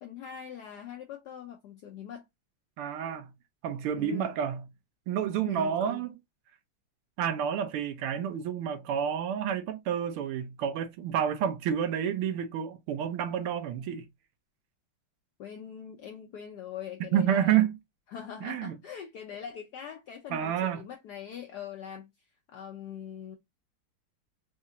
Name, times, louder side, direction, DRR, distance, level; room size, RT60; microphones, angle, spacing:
voice 1, 0.0-2.3 4.0-4.4 5.5-6.1 15.4-17.7 18.1-22.1 22.5-23.4, left 8 dB, 90° left, 0.9 m, -42 dB
voice 2, 2.8-3.3 3.6-4.6 5.1-6.1 7.2-14.1 17.1-17.8 18.4-18.8 20.3-20.8, right 9 dB, 85° right, 1.6 m, -29 dB
4.3 x 2.4 x 2.7 m
omnidirectional pair, 2.4 m